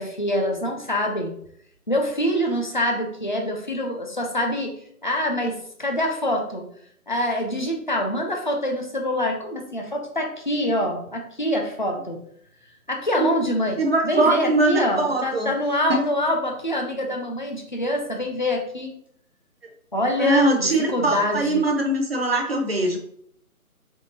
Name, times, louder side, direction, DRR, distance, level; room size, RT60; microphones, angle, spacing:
voice 1, 0.0-1.3 1.9-4.8 5.0-6.7 7.1-12.2 12.9-18.9 19.9-21.7, left 1 dB, 35° left, 2 dB, 0.5 m, -25 dB
voice 2, 13.8-15.5 15.9-16.0 20.2-23.0, right 2 dB, 45° right, 3 dB, 0.6 m, -22 dB
3.5 x 3.3 x 2.6 m, 0.67 s
figure-of-eight pair, 150°, 44 cm